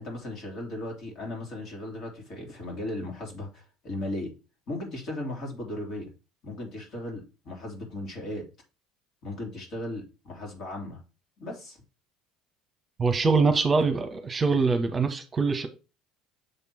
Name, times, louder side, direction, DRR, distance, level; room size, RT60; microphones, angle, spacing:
voice 1, 0.0-4.3 4.7-6.1 6.4-8.4 9.2-11.0 11.4-11.8, left 1 dB, 50° left, 2.7 m, -36 dB
voice 2, 13.0-15.7, right 4 dB, 30° right, 1.0 m, -23 dB
6.8 x 3.6 x 4.5 m
hypercardioid pair, 65°, 0 cm